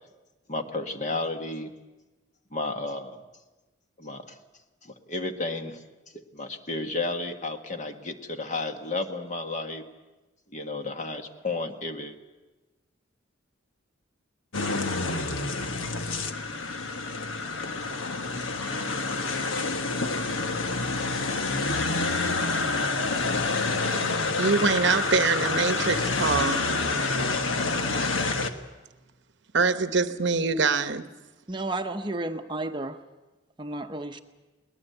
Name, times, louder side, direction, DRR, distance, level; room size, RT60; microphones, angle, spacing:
voice 1, 0.5-1.7 2.5-3.2 4.0-4.3 4.8-5.8 6.3-9.8 10.5-12.2, left 3 dB, 40° left, 1.6 m, -32 dB
sound 1, 14.5-28.5, left 3 dB, 90° left, 1.4 m, -28 dB
voice 2, 24.4-26.7 29.5-31.1, right 4 dB, 60° right, 0.9 m, -24 dB
voice 3, 31.5-33.0 33.6-34.2, right 2 dB, 25° right, 0.8 m, -32 dB
21.5 x 19.5 x 7.9 m
head